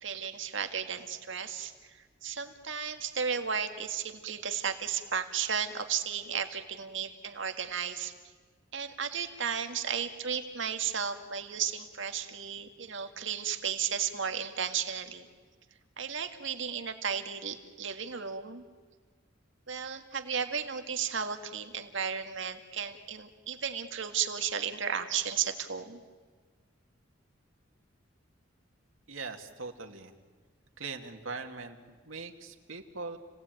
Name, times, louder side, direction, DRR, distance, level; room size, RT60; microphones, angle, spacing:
voice 1, 0.0-8.1 8.7-15.3 16.0-18.6 19.7-26.0, right 7 dB, 70° right, 7 dB, 1.9 m, -34 dB
voice 2, 29.1-30.1 30.8-33.2, right 4 dB, 90° right, 4 dB, 2.2 m, -41 dB
30.0 x 18.5 x 9.2 m, 1.5 s
head